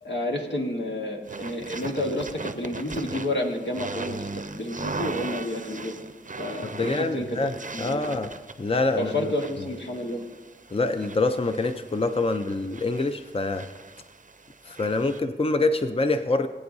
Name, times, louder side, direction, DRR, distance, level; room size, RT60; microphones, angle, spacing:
voice 1, 0.0-4.3 4.5-5.9 6.4-8.0 8.9-10.2, left 1 dB, 80° left, 1 dB, 1.5 m, -30 dB
sound 1, 1.3-15.2, right 3 dB, 45° right, 0.6 m, -39 dB
voice 2, 6.7-7.5 7.8-8.3 8.6-9.3 10.7-13.7 14.7-16.5, left 3 dB, 30° left, 8 dB, 0.5 m, -25 dB
20.5 x 8.7 x 2.7 m, 1.2 s
wide cardioid pair, 45°, 18 cm